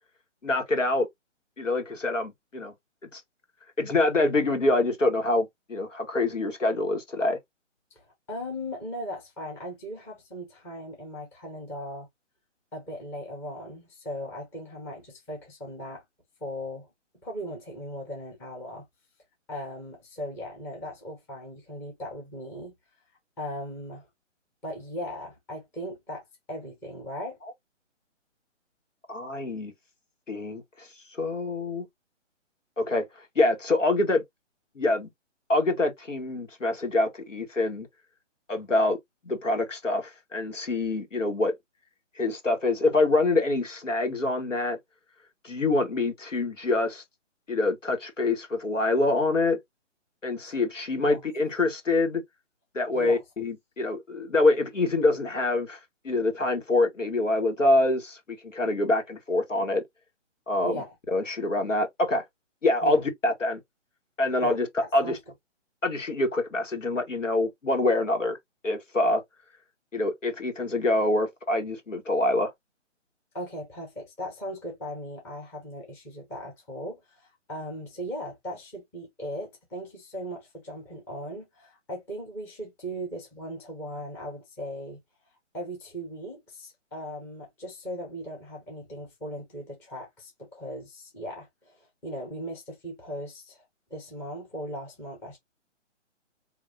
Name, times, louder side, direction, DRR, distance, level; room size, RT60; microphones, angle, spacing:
voice 1, 0.4-1.1 1.6-2.7 3.1-3.2 3.8-7.4 29.1-29.7 30.3-30.9 31.2-31.9 32.8-33.0 33.3-34.2 34.7-35.1 35.5-37.9 38.5-39.0 39.2-41.5 42.2-44.8 45.4-47.0 47.5-49.6 50.2-52.2 52.7-59.8 60.5-60.8 61.1-62.2 62.6-63.6 64.2-64.7 64.9-65.2 65.8-68.4 68.6-69.2 69.9-72.5, left 2 dB, 85° left, 1.6 m, -25 dB
voice 2, 7.9-12.1 12.7-16.0 16.4-16.9 17.2-18.9 19.5-22.7 23.4-24.1 24.6-27.4 50.4-50.6 51.1-51.2 52.9-53.2 60.6-60.9 62.8-63.0 64.4-65.2 73.3-85.0 85.5-93.6 93.9-95.4, equal, 5° left, 0.7 m, -38 dB
4.6 x 2.6 x 2.6 m
figure-of-eight pair, 140°, 37 cm